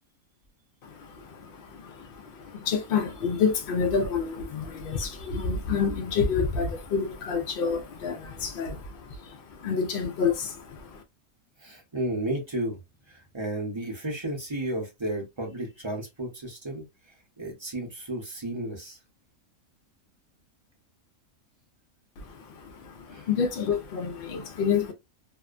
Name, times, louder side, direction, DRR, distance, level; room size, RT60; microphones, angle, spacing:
voice 1, 0.8-11.0 22.2-24.9, left 5 dB, 75° left, 0.5 m, -29 dB
voice 2, 11.6-12.8 13.1-16.8 17.4-19.0 23.1-23.3, right 1 dB, 30° right, 0.6 m, -33 dB
2.7 x 2.1 x 2.4 m
omnidirectional pair, 1.5 m